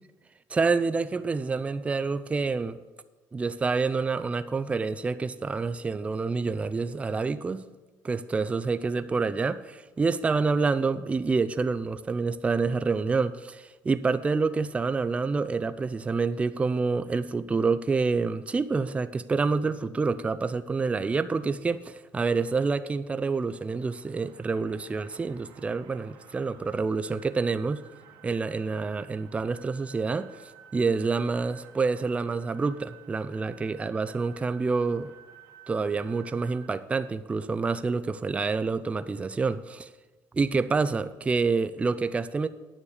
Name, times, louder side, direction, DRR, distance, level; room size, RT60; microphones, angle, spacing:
voice 1, 0.5-2.8 3.3-7.6 8.0-27.9 28.2-30.3 30.7-35.1 35.7-39.9 40.3-42.5, right 4 dB, 20° right, 0.4 m, -27 dB
sound 1, 23.0-36.7, right 8 dB, 90° right, 1.6 m, -53 dB
9.7 x 6.5 x 7.2 m
cardioid pair, 115°, 7 cm